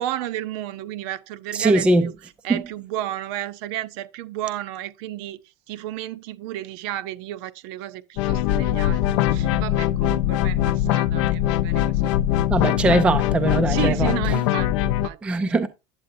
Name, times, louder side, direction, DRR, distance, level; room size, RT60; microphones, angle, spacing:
voice 1, 0.0-2.1 2.4-5.4 5.7-12.2 12.6-12.7 13.6-15.5, right 13 dB, 55° right, 0.6 m, -32 dB
voice 2, 1.5-2.0 2.5-2.6 12.5-14.1 15.2-15.7, right 2 dB, 5° right, 0.3 m, -20 dB
sound 1, 8.2-15.1, left 12 dB, 65° left, 0.5 m, -22 dB
9.0 x 7.7 x 2.6 m
cardioid pair, 180°, 16 cm